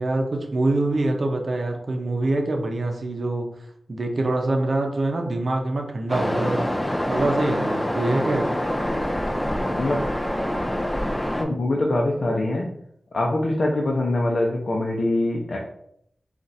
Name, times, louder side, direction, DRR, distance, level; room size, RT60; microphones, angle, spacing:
voice 1, 0.0-3.5 3.9-6.7 7.1-8.6, right 2 dB, 55° right, 3 dB, 0.7 m, -24 dB
Waves surf, 6.1-11.4, left 1 dB, 15° left, 0.6 m, -26 dB
voice 2, 11.4-12.7 13.1-15.6, left 1 dB, 55° left, -2 dB, 0.7 m, -23 dB
4.4 x 2.5 x 4.0 m, 0.71 s
wide cardioid pair, 125°, 0 cm